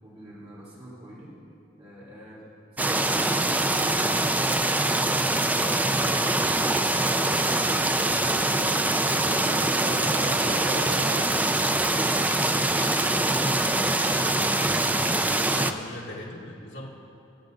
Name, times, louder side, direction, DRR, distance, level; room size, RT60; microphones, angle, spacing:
voice 1, 0.0-1.3 1.8-2.4 2.7-6.4, equal, 30° right, -9 dB, 3.2 m, -46 dB
sound 1, 2.8-15.7, right 2 dB, 10° right, 0.3 m, -24 dB
sound 2, 6.9-11.2, right 2 dB, 85° right, 0.6 m, -42 dB
voice 2, 13.7-16.9, left 1 dB, 75° left, -3 dB, 2.1 m, -41 dB
21.0 x 8.0 x 3.9 m, 2.6 s
head